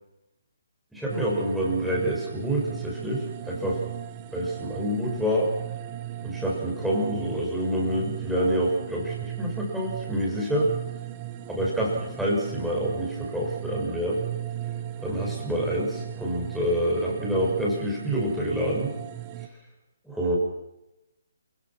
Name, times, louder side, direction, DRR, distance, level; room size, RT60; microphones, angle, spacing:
voice 1, 0.9-3.8 4.3-5.5 6.2-10.7 11.5-14.2 15.0-19.0 20.0-20.4, equal, ahead, -4 dB, 6.9 m, -27 dB
sound 1, 1.1-19.5, right 12 dB, 30° right, 1.5 m, -37 dB
29.0 x 17.5 x 6.2 m, 0.92 s
figure-of-eight pair, 140°, 0 cm